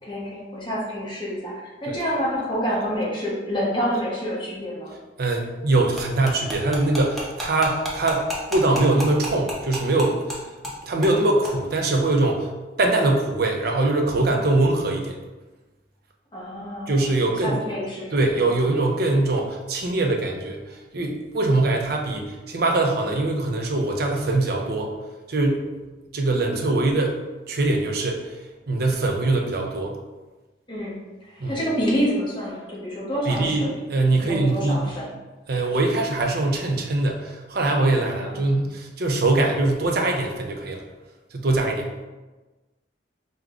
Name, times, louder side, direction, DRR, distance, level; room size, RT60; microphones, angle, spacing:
voice 1, 0.0-4.9 16.3-17.1 17.4-18.1 18.5-18.6 30.7-33.8 34.2-35.1 35.5-35.6 38.2-38.5, equal, 25° left, -5 dB, 1.1 m, -28 dB
voice 2, 5.2-10.4 10.8-12.5 12.8-15.2 16.9-17.6 18.1-24.9 25.3-25.7 26.1-27.2 27.5-28.4 28.7-30.0 31.4-31.6 33.3-35.0 35.5-40.8 41.3-41.9, right 2 dB, 55° right, 2 dB, 0.6 m, -22 dB
sound 1, 6.0-10.4 10.6-10.7 11.0-11.2 11.4-11.5, left 1 dB, ahead, 0.7 m, -31 dB
4.7 x 2.3 x 3.7 m, 1.2 s
head